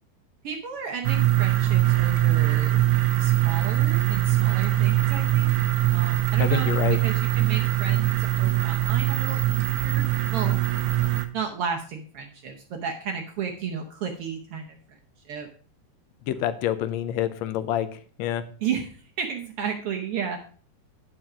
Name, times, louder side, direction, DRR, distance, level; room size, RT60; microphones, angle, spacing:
voice 1, 0.4-2.8 3.2-5.5 5.9-6.7 7.0-10.0 10.3-10.6 11.3-14.8 15.3-15.5 18.6-20.4, right 6 dB, 65° right, 3 dB, 1.5 m, -33 dB
sound 1, 1.0-11.3, right 14 dB, 80° right, 2.1 m, -22 dB
voice 2, 6.4-7.0 16.3-17.9 18.2-18.4, left 11 dB, 75° left, 12 dB, 1.8 m, -26 dB
9.2 x 6.1 x 5.0 m, 0.42 s
omnidirectional pair, 3.4 m